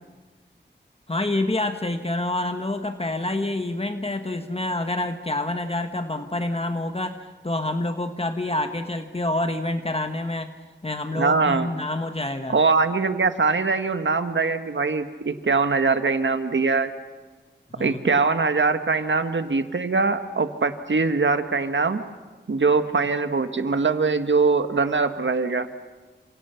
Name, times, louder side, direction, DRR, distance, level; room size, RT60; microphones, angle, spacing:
voice 1, 1.1-10.5 10.8-12.6 17.7-18.0, left 2 dB, 30° left, 7 dB, 1.4 m, -27 dB
voice 2, 11.1-11.7 12.5-16.9 17.8-22.0 22.5-25.7, right 4 dB, 75° right, 9 dB, 1.5 m, -22 dB
29.0 x 27.5 x 5.8 m, 1.3 s
wide cardioid pair, 70°, 20 cm